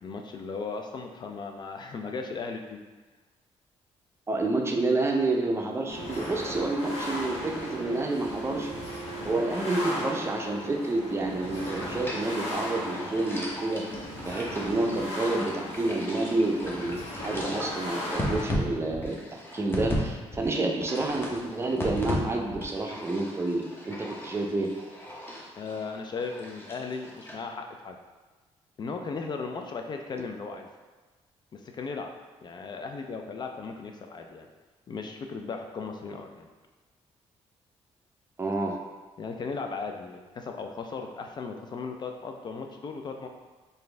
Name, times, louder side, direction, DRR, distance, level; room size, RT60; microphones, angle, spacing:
voice 1, 0.0-2.8 25.6-28.0 28.8-30.7 31.5-32.1 32.4-34.5 34.9-36.5 39.2-43.3, left 4 dB, 40° left, 4 dB, 0.4 m, -36 dB
voice 2, 4.3-8.7 9.2-13.8 14.2-24.7 38.4-38.8, right 2 dB, 25° right, 1 dB, 0.5 m, -29 dB
sound 1, 5.9-18.4, equal, 70° left, 1.4 m, -36 dB
sound 2, 11.4-20.0 20.3-22.2 22.5-27.3, left 1 dB, 20° left, 0.8 m, -37 dB
4.0 x 2.6 x 3.2 m, 1.3 s
cardioid pair, 105°, 11 cm